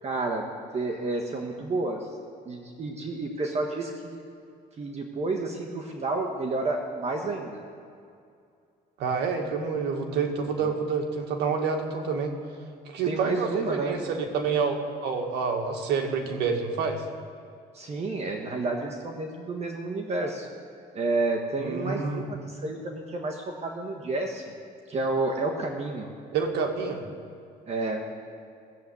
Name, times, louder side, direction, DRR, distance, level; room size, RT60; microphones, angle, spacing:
voice 1, 0.0-2.1 2.4-4.2 4.8-7.6 13.1-14.0 17.7-20.5 20.9-24.4 24.9-26.1 27.7-28.0, right 2 dB, 40° right, 2 dB, 1.4 m, -30 dB
voice 2, 9.0-12.3 12.9-17.0 21.6-22.3 26.3-27.0, right 5 dB, 80° right, 3 dB, 1.9 m, -28 dB
16.5 x 7.8 x 8.5 m, 2.4 s
cardioid pair, 110°, 17 cm